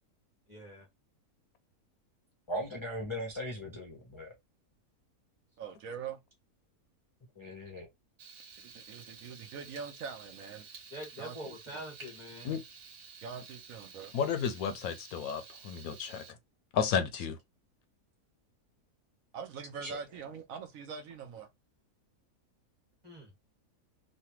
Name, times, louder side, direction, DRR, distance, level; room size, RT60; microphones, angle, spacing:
voice 1, 0.5-0.9 10.9-12.5 23.0-23.3, equal, 20° right, 1.4 m, -44 dB
voice 2, 2.5-4.3 7.4-7.9 19.8-20.0, equal, 35° left, 0.4 m, -38 dB
voice 3, 5.6-6.2 8.6-10.7 11.2-11.5 13.2-14.1 19.3-21.5, right 6 dB, 70° right, 1.0 m, -43 dB
Frying (food), 8.2-16.3, right 5 dB, 85° right, 1.5 m, -52 dB
voice 4, 14.1-16.2 16.7-17.4, left 7 dB, 75° left, 1.0 m, -32 dB
3.2 x 2.2 x 2.8 m
omnidirectional pair, 1.6 m